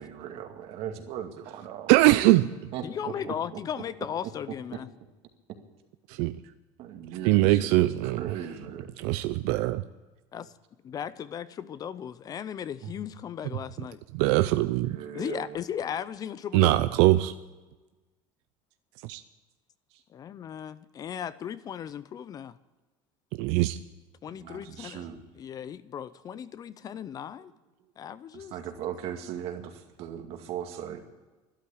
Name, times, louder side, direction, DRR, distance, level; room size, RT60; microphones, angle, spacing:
voice 1, 0.0-2.0 2.7-3.4 6.8-8.9 12.8-12.9 14.6-15.6 19.9-20.0 24.3-25.2 27.4-27.5 27.8-27.9 28.3-31.0, right 9 dB, 60° right, 5 dB, 2.1 m, -38 dB
voice 2, 1.9-2.7 6.1-6.4 7.2-8.3 9.0-9.8 14.1-15.0 16.5-17.3 19.0-19.2 23.4-23.8, right 17 dB, 75° right, 12 dB, 0.5 m, -22 dB
voice 3, 2.8-4.9 10.3-10.5 10.8-14.0 15.1-16.8 20.1-22.6 24.2-25.0 25.4-27.5 28.0-28.5, left 9 dB, 35° left, 16 dB, 0.6 m, -36 dB
12.5 x 11.5 x 8.6 m, 1.2 s
cardioid pair, 135°, 11 cm